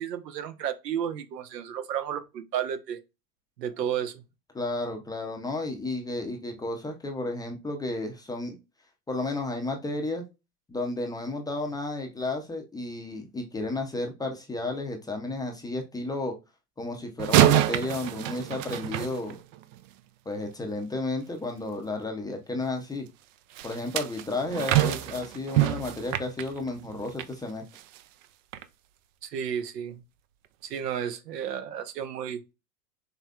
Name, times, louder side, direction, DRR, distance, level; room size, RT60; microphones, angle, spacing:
voice 1, 0.0-3.0 3.6-4.2 29.2-30.0 30.6-32.4, right 9 dB, 75° right, 1.0 m, -32 dB
voice 2, 4.5-8.5 9.1-10.2 10.7-16.4 16.8-19.4 20.3-23.1 23.6-27.6, left 2 dB, 10° left, 0.6 m, -32 dB
sound 1, 17.2-19.8 23.5-27.3 27.7-28.0 28.5-28.6, right 13 dB, 50° right, 0.6 m, -26 dB
5.2 x 3.2 x 2.4 m
hypercardioid pair, 115°, 49 cm